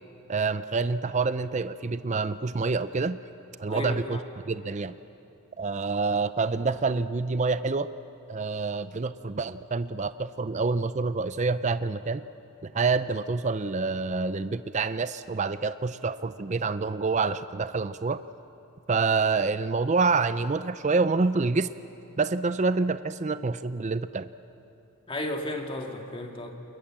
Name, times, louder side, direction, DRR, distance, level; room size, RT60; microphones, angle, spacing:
voice 1, 0.3-3.2 3.6-4.9 5.6-7.9 8.3-12.2 12.7-18.2 18.9-21.7 22.2-24.3, right 4 dB, 30° right, 13 dB, 0.5 m, -27 dB
voice 2, 3.7-4.2 25.1-26.5, left 1 dB, 25° left, 3 dB, 2.0 m, -33 dB
29.5 x 21.5 x 7.5 m, 2.8 s
head